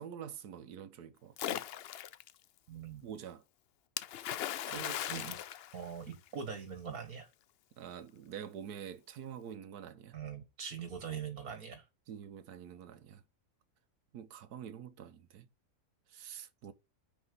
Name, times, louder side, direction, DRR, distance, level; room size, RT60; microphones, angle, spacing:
voice 1, 0.0-1.6 3.0-3.4 4.7-5.2 7.8-10.2 12.1-13.2 14.1-15.5 16.1-16.7, right 8 dB, 85° right, 1.4 m, -46 dB
Splash splatter, 1.4-2.3 4.0-6.4, left 11 dB, 90° left, 0.5 m, -38 dB
voice 2, 2.7-3.1 4.7-4.8 5.1-5.4 5.7-7.3 10.1-11.9, right 7 dB, 70° right, 2.0 m, -42 dB
9.7 x 4.1 x 5.1 m
omnidirectional pair, 1.6 m